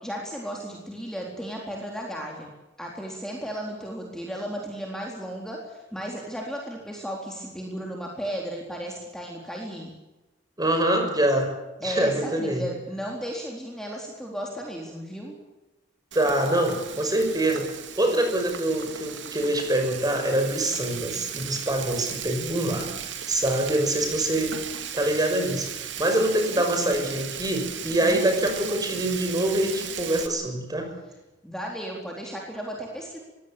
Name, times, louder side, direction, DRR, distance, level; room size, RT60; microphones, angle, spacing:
voice 1, 0.0-2.5 2.8-9.9 11.8-15.3 22.3-22.9 26.5-27.2 28.0-28.3 31.4-33.2, right 1 dB, 5° left, -1 dB, 4.0 m, -35 dB
voice 2, 10.6-11.5 11.8-12.6 16.1-22.9 23.3-24.6 24.9-25.7 26.0-30.9, right 1 dB, 20° right, 5 dB, 6.2 m, -25 dB
Frying (food), 16.1-30.3, right 9 dB, 80° right, 2.6 m, -36 dB
22.5 x 16.5 x 8.8 m, 1.0 s
head